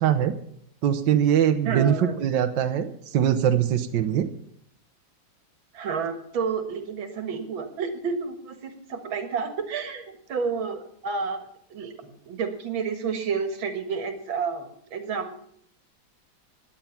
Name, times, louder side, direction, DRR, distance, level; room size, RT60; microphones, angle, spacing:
voice 1, 0.0-0.3 0.8-4.3, right 9 dB, 70° right, 7 dB, 1.5 m, -22 dB
voice 2, 1.6-2.2 5.7-11.4 11.7-15.4, right 5 dB, 90° right, 7 dB, 2.4 m, -30 dB
17.5 x 10.5 x 5.9 m, 0.68 s
omnidirectional pair, 2.1 m